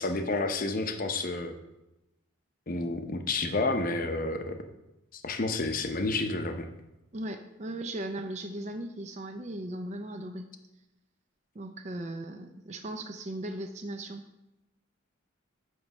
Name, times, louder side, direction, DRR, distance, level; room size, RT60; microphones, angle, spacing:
voice 1, 0.0-1.5 2.7-4.6 5.1-6.7, left 2 dB, 40° left, 6 dB, 0.7 m, -30 dB
voice 2, 7.1-10.5 11.5-14.2, right 1 dB, 35° right, 6 dB, 0.5 m, -37 dB
9.4 x 3.3 x 5.9 m, 0.95 s
head